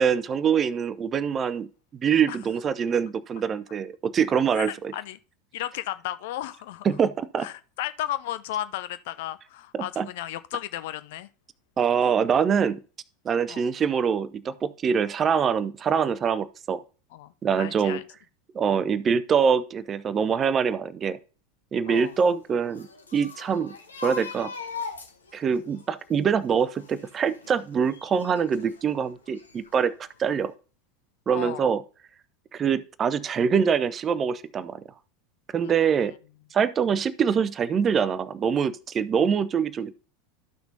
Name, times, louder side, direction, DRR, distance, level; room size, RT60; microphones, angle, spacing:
voice 1, 0.0-4.9 6.8-7.5 9.7-10.1 11.8-12.8 13.2-16.8 17.4-18.0 18.5-21.2 21.7-22.9 23.1-23.7 24.0-24.5 25.3-30.5 31.3-31.8 32.5-34.8 35.5-36.1 36.5-39.9, right 7 dB, 25° right, 0.6 m, -24 dB
voice 2, 4.6-5.2 5.5-6.9 7.4-11.3 13.5-13.6 17.1-18.0 21.9-22.1 31.3-31.7 35.6-36.1, left 13 dB, 55° left, 0.5 m, -34 dB
sound 1, 22.0-28.8 29.3-30.1 30.4-30.5, left 5 dB, 75° left, 1.1 m, -41 dB
13.0 x 6.0 x 2.7 m
figure-of-eight pair, 80°, 0 cm